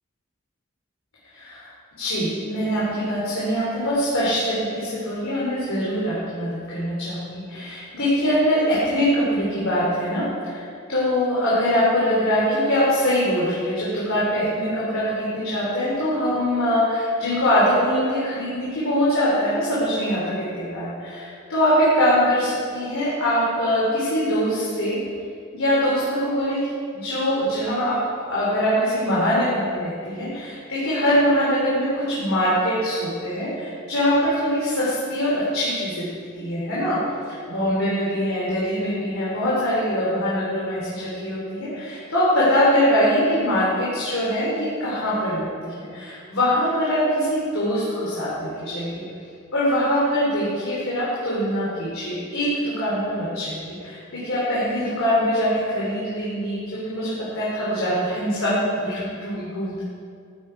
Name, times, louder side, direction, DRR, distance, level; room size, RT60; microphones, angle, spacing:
voice 1, 1.3-1.7 2.0-10.6 10.9-25.0 25.5-28.0 28.3-36.1 36.3-37.0 37.3-49.0 49.5-59.8, equal, 85° left, -8 dB, 3.5 m, -23 dB
14.5 x 10.0 x 4.7 m, 2.4 s
head